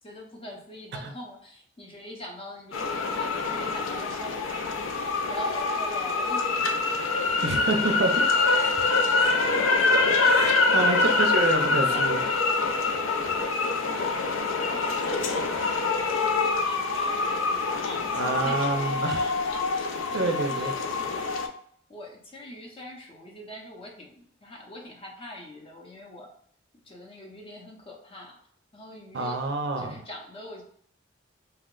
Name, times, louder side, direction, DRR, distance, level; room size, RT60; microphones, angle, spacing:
voice 1, 0.0-6.4 11.1-11.2 11.7-12.1 13.4-21.4 21.9-26.3 26.8-28.4 28.7-29.4 29.8-30.6, left 1 dB, 30° left, 0 dB, 0.6 m, -43 dB
sound 1, 2.7-21.5, left 3 dB, 85° left, 0.4 m, -25 dB
voice 2, 7.4-8.2 8.6-8.9 9.2-9.3 10.2-12.2 18.1-19.2 20.1-20.7 29.1-30.0, right 2 dB, 55° right, 4 dB, 0.5 m, -28 dB
2.8 x 2.1 x 3.7 m, 0.63 s
head